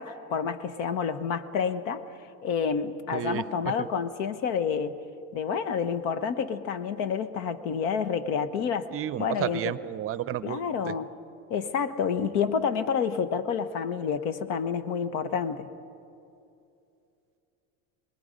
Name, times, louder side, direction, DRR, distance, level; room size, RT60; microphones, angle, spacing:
voice 1, 0.0-2.0 2.4-5.0 5.3-8.9 9.2-9.7 10.4-11.1 11.5-15.7, left 6 dB, 80° left, 12 dB, 1.2 m, -29 dB
voice 2, 3.1-3.9 8.9-10.9, right 11 dB, 35° right, 15 dB, 0.6 m, -32 dB
26.5 x 20.0 x 5.2 m, 2.7 s
supercardioid pair, 120°, 40 cm